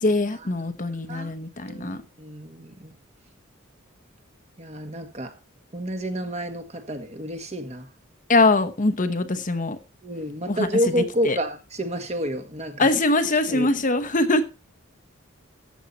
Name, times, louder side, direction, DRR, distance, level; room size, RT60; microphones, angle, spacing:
voice 1, 0.0-2.0 8.3-9.8 10.5-10.7 11.2-11.4 12.8-14.4, left 2 dB, 40° left, 1.0 m, -22 dB
voice 2, 1.7-2.9 4.6-5.3 5.7-7.9 10.0-12.9 13.5-13.7, equal, 30° right, 1.6 m, -29 dB
13.5 x 8.4 x 4.2 m
head